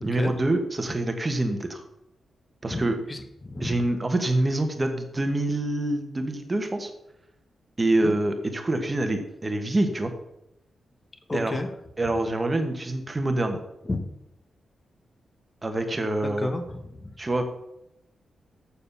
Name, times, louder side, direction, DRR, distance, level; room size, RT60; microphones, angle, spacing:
voice 1, 0.0-1.8 2.6-3.0 3.6-6.9 7.8-10.1 11.3-11.5 12.0-13.6 15.6-16.5 17.2-17.4, right 2 dB, 20° right, 6 dB, 1.2 m, -26 dB
voice 2, 2.6-3.8 8.0-8.1 11.3-11.7 13.8-14.1 16.2-17.1, left 2 dB, 20° left, 8 dB, 1.1 m, -32 dB
7.0 x 6.8 x 6.8 m, 0.84 s
wide cardioid pair, 135°, 0 cm